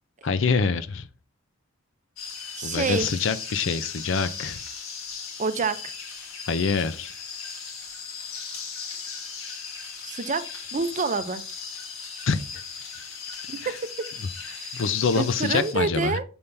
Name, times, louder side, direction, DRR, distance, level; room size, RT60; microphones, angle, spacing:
voice 1, 0.2-1.1 2.6-4.6 6.5-7.1 12.3-12.4 14.7-16.2, left 5 dB, 65° left, 0.5 m, -25 dB
sound 1, 2.2-15.7, left 5 dB, 85° left, 1.6 m, -37 dB
voice 2, 2.6-3.1 5.4-5.9 10.0-10.4 10.7-11.4 13.5-14.1 14.5-14.8 15.1-16.2, right 4 dB, 35° right, 0.6 m, -27 dB
7.0 x 5.5 x 3.3 m
head